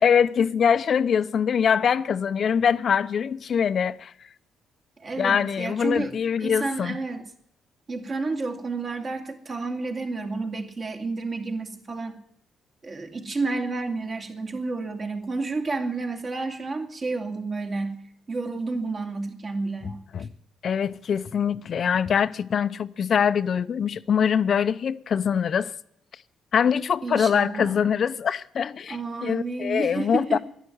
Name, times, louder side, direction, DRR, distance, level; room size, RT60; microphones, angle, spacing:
voice 1, 0.0-4.1 5.2-7.0 20.1-20.3 20.6-25.7 26.5-30.4, left 7 dB, 55° left, 0.6 m, -23 dB
voice 2, 5.0-7.3 7.9-12.2 12.8-18.0 18.3-20.0 27.0-27.8 28.9-30.4, right 3 dB, 40° right, 2.6 m, -30 dB
11.5 x 11.0 x 9.4 m
cardioid pair, 90°, 0 cm